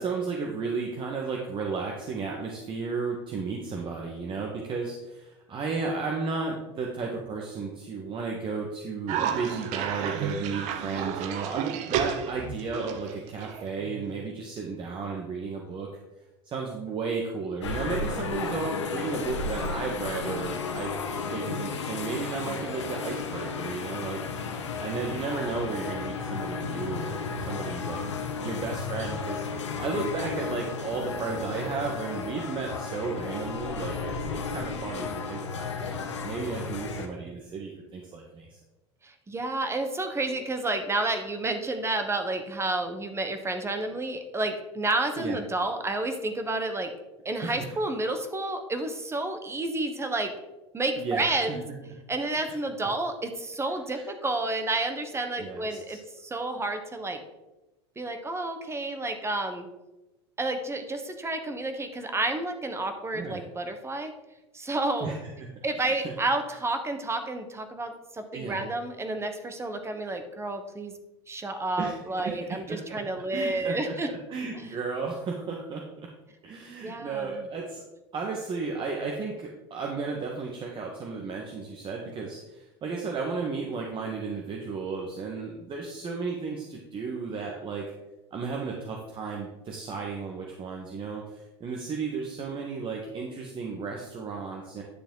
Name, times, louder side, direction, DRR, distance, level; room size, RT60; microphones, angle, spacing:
voice 1, 0.0-15.9 16.4-20.9 21.3-24.2 24.8-28.0 28.4-35.9 36.2-38.6 45.2-45.4 47.4-47.7 51.0-51.6 52.2-52.5 53.9-54.0 55.4-56.0 63.1-63.4 65.0-65.3 65.8-66.1 68.3-68.7 71.8-73.0 73.3-73.9 74.3-76.1 76.4-77.8 78.1-87.9 88.3-94.8, right 4 dB, 35° right, 0 dB, 1.6 m, -34 dB
Cough, 9.1-14.1, right 8 dB, 55° right, 0.9 m, -32 dB
sound 1, 17.6-37.1, left 5 dB, 85° left, 1.1 m, -33 dB
voice 2, 39.0-46.9 47.2-50.3 50.7-51.6 52.1-57.2 58.0-59.6 60.4-64.1 64.5-65.1 65.6-70.9 71.3-74.1 74.5-74.6 76.8-77.4, right 2 dB, 20° right, 7 dB, 1.3 m, -30 dB
10.0 x 6.9 x 3.9 m, 1.0 s
hypercardioid pair, 85°, 15 cm